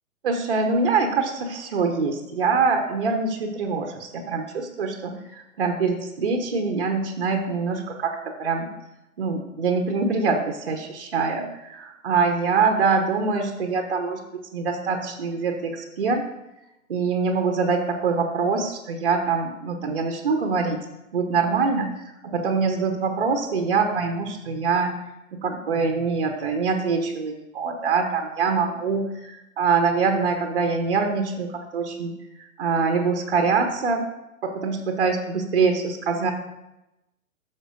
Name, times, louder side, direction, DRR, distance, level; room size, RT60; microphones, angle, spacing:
voice 1, 0.2-8.7 9.2-14.2 14.5-16.2 16.9-20.8 21.1-24.9 25.3-34.1 34.4-36.3, right 4 dB, 40° right, 4 dB, 0.8 m, -24 dB
11.5 x 6.6 x 2.5 m, 0.92 s
figure-of-eight pair, 125°, 42 cm